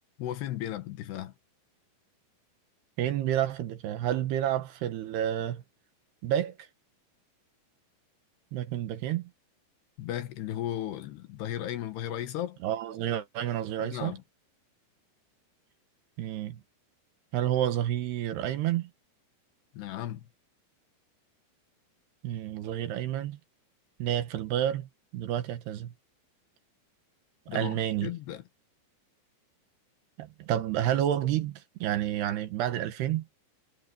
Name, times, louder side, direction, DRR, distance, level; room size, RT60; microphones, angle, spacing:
voice 1, 0.2-1.3 10.0-12.6 13.8-14.2 19.7-20.3 27.5-28.4, left 12 dB, 75° left, 3.3 m, -35 dB
voice 2, 3.0-5.6 6.2-6.6 8.5-9.3 12.6-14.1 16.2-16.6 17.3-18.9 22.2-23.4 24.0-25.9 27.5-28.1 30.2-33.3, right 11 dB, 70° right, 3.2 m, -30 dB
omnidirectional pair, 5.1 m